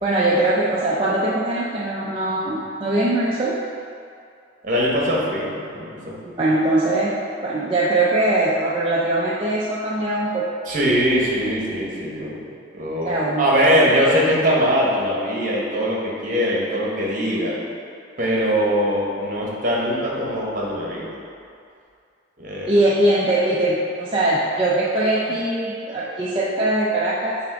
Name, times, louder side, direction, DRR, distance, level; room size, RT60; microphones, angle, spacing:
voice 1, 0.0-3.6 6.4-7.1 7.4-10.5 13.0-13.9 22.7-27.4, right 2 dB, 25° right, -7 dB, 0.5 m, -21 dB
voice 2, 4.6-6.3 10.7-12.5 12.7-17.6 18.2-21.1 22.4-22.7, equal, 45° right, -4 dB, 1.2 m, -21 dB
7.2 x 3.5 x 4.7 m, 2.4 s
head